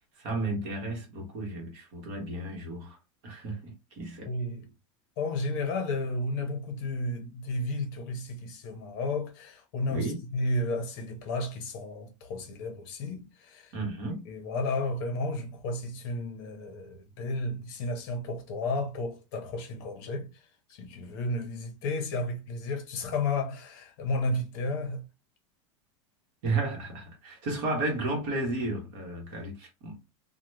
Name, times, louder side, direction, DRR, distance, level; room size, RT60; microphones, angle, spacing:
voice 1, 0.2-3.0 3.2-4.3 9.9-10.2 13.7-14.2 26.4-30.0, right 2 dB, 40° right, 1.1 m, -33 dB
voice 2, 4.2-4.7 5.2-13.7 14.2-20.3 20.7-25.0, left 2 dB, 40° left, 0.7 m, -32 dB
2.9 x 2.1 x 3.1 m
supercardioid pair, 180°, 16 cm